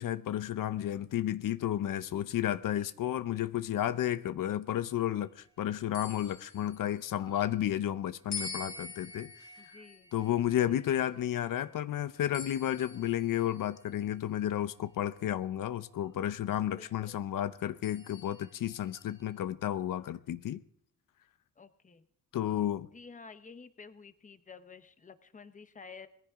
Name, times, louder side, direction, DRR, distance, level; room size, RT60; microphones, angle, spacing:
voice 1, 0.0-9.3 9.7-9.8 10.1-20.6 22.3-22.9, left 11 dB, 80° left, 0.7 m, -32 dB
voice 2, 2.6-3.2 9.6-10.1 10.6-10.9 16.8-17.2 21.6-22.1 22.9-26.1, left 5 dB, 25° left, 1.0 m, -52 dB
sound 1, 5.9-7.5 8.3-11.8 12.3-14.1 14.8-14.9 17.8-19.3, left 3 dB, 60° left, 4.5 m, -46 dB
20.5 x 15.0 x 3.6 m
wide cardioid pair, 155°, 32 cm